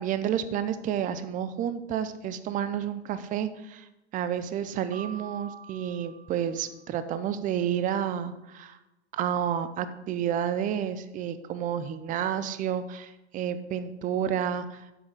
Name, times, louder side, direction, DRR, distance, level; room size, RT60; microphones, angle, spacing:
voice 1, 0.0-3.9 4.1-8.8 9.1-14.9, right 9 dB, 25° right, 12 dB, 0.5 m, -30 dB
Piano, 4.9-7.1, right 6 dB, 75° right, 2.0 m, -47 dB
8.1 x 6.4 x 4.7 m, 0.95 s
hypercardioid pair, 105°, 35 cm